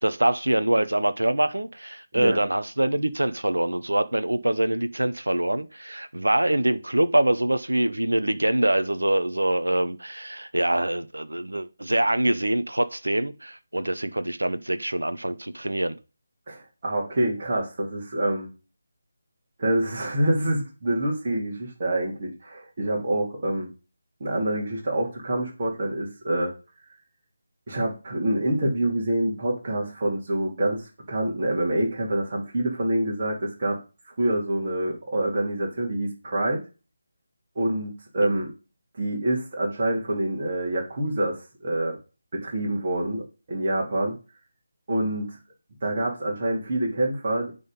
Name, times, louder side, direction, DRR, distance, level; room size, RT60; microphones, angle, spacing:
voice 1, 0.0-16.0, right 1 dB, 75° right, 0.7 m, -24 dB
voice 2, 16.5-18.5 19.6-23.7 24.2-26.5 27.7-33.8 34.2-36.6 37.5-38.5 38.9-42.0 42.3-44.1 44.9-45.3 45.8-47.5, right 1 dB, 35° right, 2.8 m, -26 dB
9.4 x 3.9 x 5.2 m
figure-of-eight pair, 155°, 0 cm